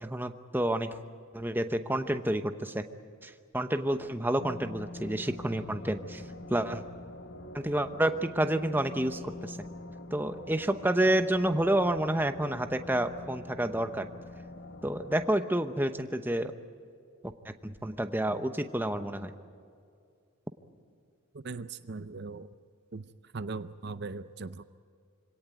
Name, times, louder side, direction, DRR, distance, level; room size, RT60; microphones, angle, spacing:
voice 1, 0.0-0.9 1.3-2.8 3.2-6.2 6.5-6.8 7.5-9.6 10.1-14.1 14.8-16.5 17.2-19.3, right 1 dB, 10° right, 9 dB, 0.8 m, -29 dB
sound 1, 4.4-15.3, left 2 dB, 55° left, 1.1 m, -45 dB
voice 2, 21.3-22.5 22.9-24.6, right 3 dB, 50° right, 13 dB, 0.6 m, -39 dB
25.5 x 17.5 x 9.1 m, 2.4 s
head